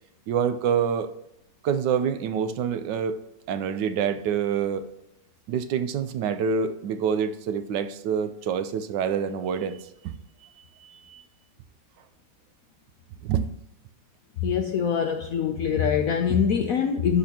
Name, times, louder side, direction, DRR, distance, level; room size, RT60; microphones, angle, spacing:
voice 1, 0.3-1.1 1.6-3.2 3.5-4.8 5.5-10.2 10.6-11.2 13.2-13.5, right 7 dB, 75° right, 11 dB, 1.2 m, -27 dB
voice 2, 14.4-17.2, left 7 dB, 70° left, 5 dB, 0.8 m, -24 dB
11.0 x 4.1 x 2.8 m, 0.82 s
omnidirectional pair, 2.0 m